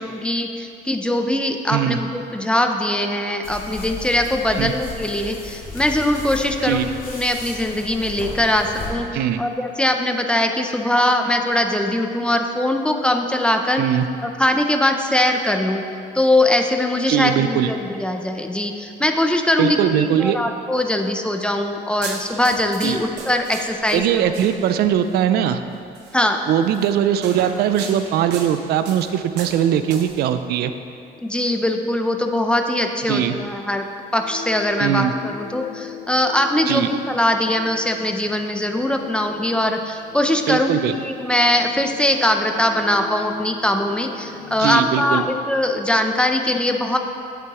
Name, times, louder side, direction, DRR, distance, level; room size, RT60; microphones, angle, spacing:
voice 1, 0.0-9.1 9.4-13.8 14.2-15.8 16.1-24.4 26.1-26.4 31.2-33.9 34.1-47.0, left 1 dB, 5° left, 4 dB, 0.5 m, -21 dB
sound 1, 3.4-8.9, left 3 dB, 55° left, 1.8 m, -35 dB
voice 2, 17.1-17.7 19.6-20.4 22.8-23.0 23.9-25.6 26.5-30.7 33.1-33.3 34.8-35.1 36.7-36.9 40.5-40.9 44.6-45.3, right 10 dB, 70° right, 10 dB, 0.4 m, -20 dB
sound 2, 22.0-24.9 26.0-26.2 26.7-30.2, right 5 dB, 85° right, 0.9 m, -36 dB
sound 3, 33.7-45.3, left 7 dB, 80° left, 0.8 m, -40 dB
8.2 x 7.5 x 3.0 m, 2.5 s
cardioid pair, 110°, 17 cm